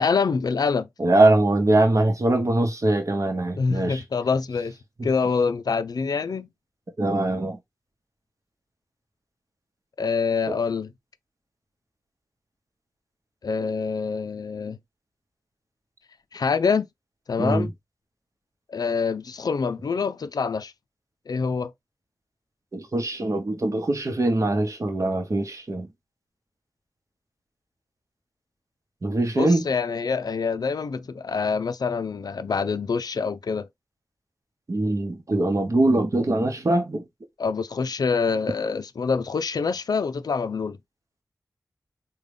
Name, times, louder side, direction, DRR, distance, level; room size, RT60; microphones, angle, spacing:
voice 1, 0.0-0.9 3.6-4.8 5.0-6.5 10.0-10.9 13.4-14.8 16.3-16.9 17.3-17.7 18.7-20.7 21.3-21.7 29.4-33.7 37.4-40.8, left 5 dB, 70° left, 0.4 m, -25 dB
voice 2, 1.0-4.0 5.0-5.1 7.0-7.6 10.5-10.6 17.4-17.7 22.7-25.9 29.0-29.7 34.7-37.0, right 2 dB, 50° right, 0.9 m, -22 dB
3.7 x 2.3 x 3.3 m
wide cardioid pair, 80°, 7 cm